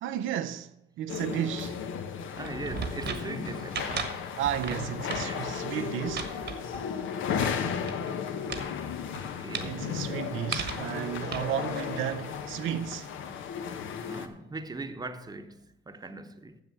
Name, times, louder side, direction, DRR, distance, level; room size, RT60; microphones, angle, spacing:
voice 1, 0.0-1.8 4.4-6.3 9.6-13.2, right 10 dB, 85° right, 0.5 m, -33 dB
sound 1, 1.1-14.3, left 7 dB, 80° left, 1.0 m, -35 dB
voice 2, 2.3-4.3 5.1-5.5 9.2-9.9 14.0-16.6, right 2 dB, 20° right, 0.9 m, -40 dB
sound 2, 2.4-8.1 8.5-8.7 9.0-9.7 10.5-10.9 11.3-12.1, right 6 dB, 60° right, 1.3 m, -37 dB
7.4 x 6.9 x 8.1 m
cardioid pair, 90°, 20 cm